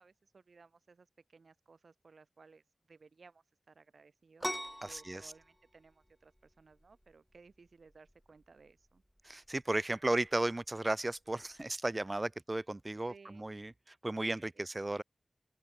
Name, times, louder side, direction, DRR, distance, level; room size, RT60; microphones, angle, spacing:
voice 1, 0.0-4.5 4.8-9.0 13.1-13.5 14.5-14.7, right 4 dB, 85° right, 4.9 m, -60 dB
sound 1, 4.4-11.8, equal, 5° left, 1.0 m, -46 dB
voice 2, 4.8-5.3 9.2-15.0, right 2 dB, 35° right, 1.2 m, -35 dB
open air
wide cardioid pair, 55°, 0 cm